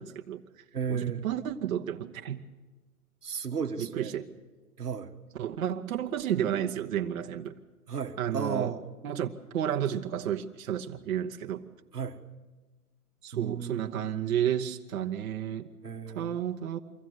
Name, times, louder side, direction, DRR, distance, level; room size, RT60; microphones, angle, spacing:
voice 1, 0.0-0.6 0.9-2.5 3.8-4.3 5.4-7.5 8.2-8.8 9.0-11.7 13.2-15.7 16.1-16.8, right 10 dB, 60° right, 1.1 m, -32 dB
voice 2, 0.7-1.2 3.2-4.1 4.8-5.1 7.9-8.9 11.9-12.2 13.3-14.0 15.8-16.4, right 6 dB, 90° right, 1.4 m, -34 dB
24.0 x 16.0 x 7.8 m
figure-of-eight pair, 115°, 45 cm